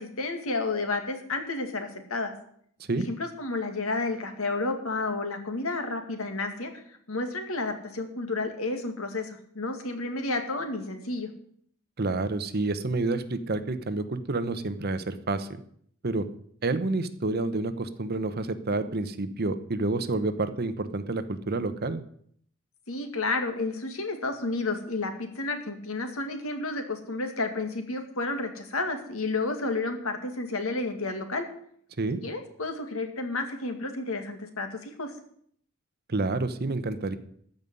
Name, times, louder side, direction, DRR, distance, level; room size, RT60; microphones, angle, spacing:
voice 1, 0.0-2.3 3.1-6.8 7.1-11.3 22.9-31.5 32.2-35.1, left 3 dB, 80° left, 5 dB, 2.1 m, -31 dB
voice 2, 12.0-15.5 16.0-16.2 16.6-22.0 32.0-32.2 36.1-37.2, right 2 dB, 45° right, 11 dB, 0.9 m, -29 dB
14.5 x 5.4 x 9.5 m, 0.64 s
head